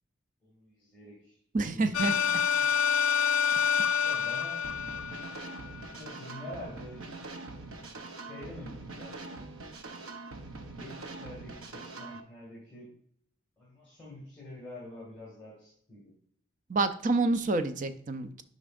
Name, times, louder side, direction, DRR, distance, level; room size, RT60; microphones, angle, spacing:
voice 1, 0.4-1.4 1.7-2.5 4.0-4.6 5.9-7.0 8.1-9.4 10.4-12.9 13.6-16.1, left 1 dB, 5° left, -5 dB, 2.1 m, -46 dB
voice 2, 1.5-2.1 16.7-18.4, right 3 dB, 40° right, 10 dB, 0.4 m, -28 dB
sound 1, 1.9-5.8, left 7 dB, 90° left, 0.4 m, -27 dB
sound 2, 4.6-12.2, right 3 dB, 90° right, 0.8 m, -43 dB
8.5 x 5.3 x 2.5 m, 0.65 s
head